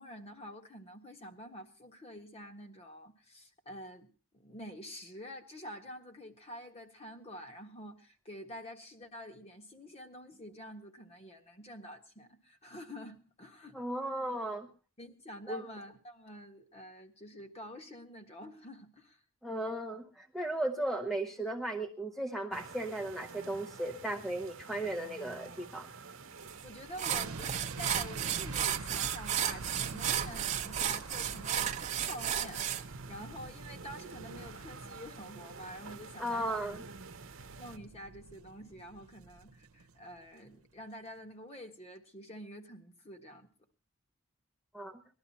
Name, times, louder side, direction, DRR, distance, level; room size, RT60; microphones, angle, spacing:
voice 1, 0.0-13.8 15.0-19.2 26.6-36.6 37.6-43.5, equal, 30° left, 5 dB, 1.5 m, -48 dB
voice 2, 13.7-14.7 15.5-15.6 19.4-25.9 36.2-36.8 44.7-45.0, right 1 dB, ahead, 4 dB, 0.7 m, -36 dB
sound 1, 22.5-37.8, right 4 dB, 60° right, 1.0 m, -50 dB
sound 2, 26.5-26.6 27.0-32.8, right 10 dB, 30° right, 0.8 m, -33 dB
sound 3, 27.1-40.2 40.5-40.7, right 3 dB, 85° right, 0.9 m, -46 dB
20.0 x 12.0 x 4.2 m, 0.37 s
head